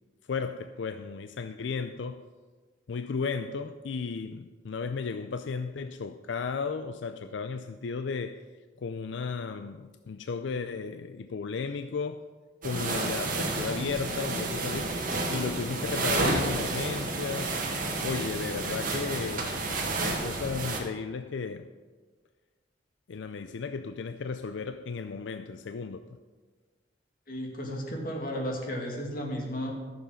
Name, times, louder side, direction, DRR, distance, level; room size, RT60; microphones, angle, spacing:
voice 1, 0.3-2.3 2.9-8.4 8.8-12.3 12.6-15.0 15.3-17.6 18.0-19.6 20.0-21.7 23.1-26.1, left 5 dB, 85° left, 0.4 m, -34 dB
sound 1, 12.6-20.8, right 2 dB, 50° right, 1.8 m, -30 dB
voice 2, 27.3-29.7, equal, 50° left, 2.3 m, -34 dB
13.5 x 7.1 x 5.7 m
head